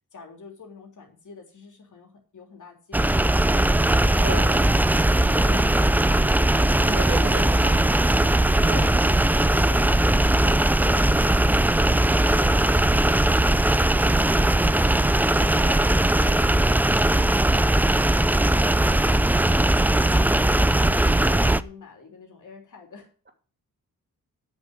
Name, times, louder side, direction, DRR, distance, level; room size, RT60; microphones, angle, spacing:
voice 1, 0.1-6.5 8.6-10.1 17.9-18.3 18.7-23.1, left 4 dB, 60° left, 2 dB, 3.4 m, -46 dB
sound 1, 2.9-21.6, right 1 dB, 5° right, 0.4 m, -19 dB
voice 2, 4.2-4.7 5.4-5.8 6.8-7.9, right 3 dB, 30° right, 4 dB, 2.7 m, -33 dB
8.6 x 6.4 x 8.3 m, 0.39 s
cardioid pair, 90°, 34 cm